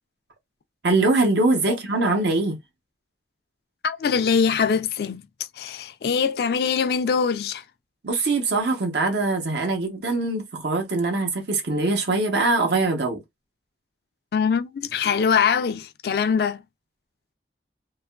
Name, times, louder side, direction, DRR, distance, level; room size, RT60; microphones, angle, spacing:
voice 1, 0.8-2.6 8.0-13.2, right 2 dB, 75° right, 0.8 m, -22 dB
voice 2, 3.8-5.2 5.6-7.6 14.3-16.6, left 6 dB, 60° left, 0.3 m, -23 dB
2.8 x 2.3 x 2.2 m
head